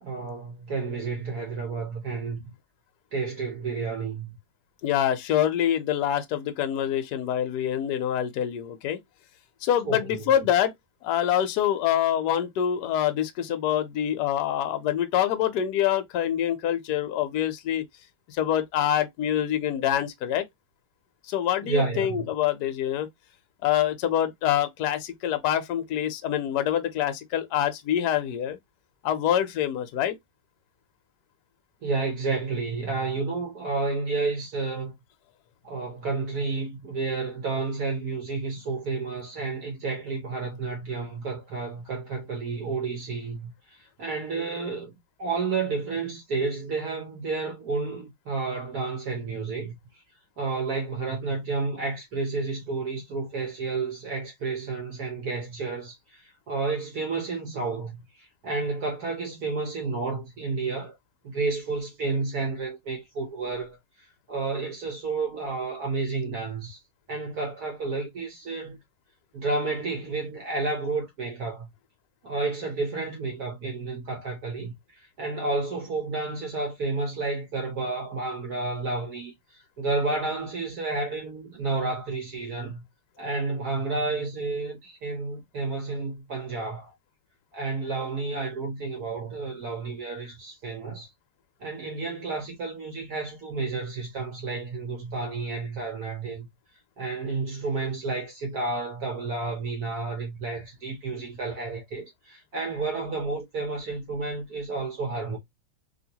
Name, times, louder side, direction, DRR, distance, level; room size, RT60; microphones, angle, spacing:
voice 1, 0.0-2.4 3.1-4.4 9.9-10.3 21.6-22.2 31.8-34.9 35.6-44.9 45.2-49.7 50.4-61.0 61.2-66.8 67.1-68.8 69.3-71.7 72.2-74.7 75.2-82.8 83.2-86.9 87.5-91.1 91.6-96.5 97.0-105.4, right 3 dB, 60° right, 1.2 m, -31 dB
voice 2, 4.8-9.0 9.6-10.7 11.0-17.8 18.3-20.4 21.2-23.1 23.6-28.6 29.0-30.2, left 10 dB, 70° left, 1.0 m, -25 dB
3.0 x 2.8 x 2.8 m
omnidirectional pair, 2.3 m